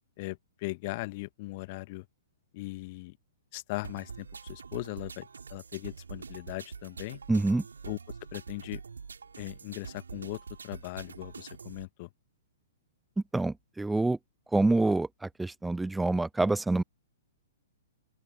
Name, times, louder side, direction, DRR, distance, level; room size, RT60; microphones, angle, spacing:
voice 1, 0.2-2.1 2.5-3.2 3.5-7.2 7.8-8.0 8.3-8.8 9.4-12.1, left 23 dB, 40° left, 1.4 m, -39 dB
sound 1, 3.8-11.9, right 5 dB, 70° right, 4.7 m, -45 dB
voice 2, 7.3-7.6 13.3-14.2 14.5-16.8, right 2 dB, 5° right, 0.3 m, -26 dB
open air
figure-of-eight pair, 110°, 0 cm